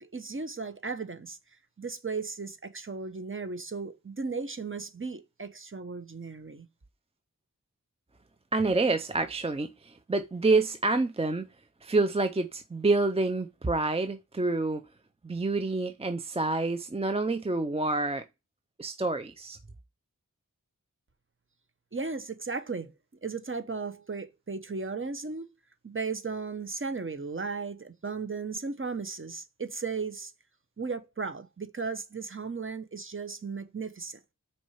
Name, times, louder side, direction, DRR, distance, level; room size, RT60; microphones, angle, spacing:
voice 1, 0.0-1.4 1.8-6.7 21.9-22.9 23.2-25.5 25.8-30.3 30.8-34.3, right 4 dB, 40° right, 0.9 m, -36 dB
voice 2, 8.5-11.5 11.8-14.8 15.2-18.2 18.8-19.6, right 3 dB, 20° right, 0.4 m, -27 dB
6.2 x 4.4 x 5.6 m
wide cardioid pair, 70°, 33 cm